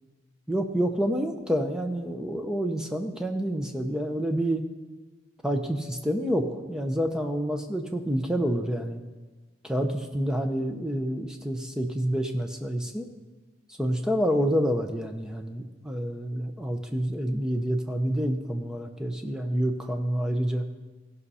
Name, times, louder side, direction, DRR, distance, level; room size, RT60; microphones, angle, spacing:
voice 1, 0.5-4.6 5.4-9.0 9.6-13.1 13.8-20.7, equal, 5° right, 5 dB, 0.7 m, -28 dB
16.5 x 5.5 x 5.6 m, 1.3 s
head